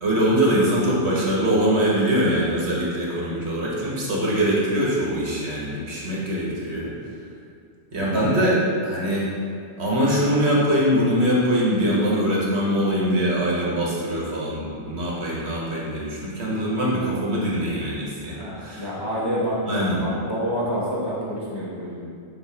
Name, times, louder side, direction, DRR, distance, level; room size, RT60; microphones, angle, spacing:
voice 1, 0.0-6.9 7.9-9.3 9.8-18.9 19.6-20.0, equal, 65° right, -5 dB, 1.5 m, -23 dB
voice 2, 18.4-22.0, equal, 20° left, -7 dB, 1.1 m, -28 dB
6.9 x 2.9 x 4.9 m, 2.3 s
omnidirectional pair, 1.2 m